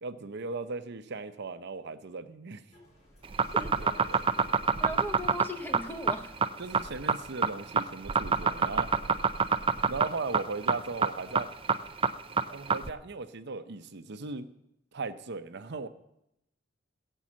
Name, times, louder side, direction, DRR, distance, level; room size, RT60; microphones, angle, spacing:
voice 1, 0.0-2.6 3.8-4.5 6.6-8.9 9.8-11.5 12.5-14.5 14.9-15.9, right 3 dB, 60° right, 10 dB, 0.7 m, -38 dB
sound 1, 2.7-12.0, equal, 35° left, 3.9 m, -54 dB
sound 2, 3.2-12.9, right 6 dB, 25° right, 0.4 m, -26 dB
voice 2, 3.5-4.1 4.8-6.3, equal, 10° left, 6 dB, 0.9 m, -39 dB
16.5 x 5.5 x 7.4 m, 0.83 s
head